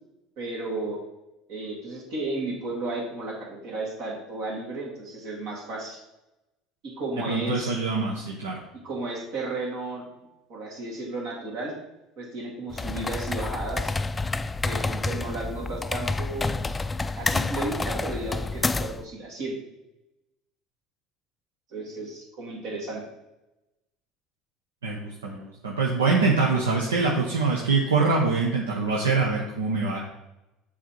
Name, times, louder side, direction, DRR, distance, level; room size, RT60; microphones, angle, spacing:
voice 1, 0.4-1.0 1.5-6.0 6.8-7.7 8.8-10.0 10.5-11.7 12.2-13.9 14.6-16.6 17.2-19.5 21.7-23.0, right 2 dB, 65° right, -2 dB, 2.4 m, -33 dB
voice 2, 7.3-8.6 24.8-30.0, right 4 dB, 90° right, -2 dB, 0.9 m, -24 dB
sound 1, 12.7-19.0, left 3 dB, 20° left, 0.3 m, -29 dB
7.3 x 4.3 x 4.4 m, 0.93 s
hypercardioid pair, 70°, 0 cm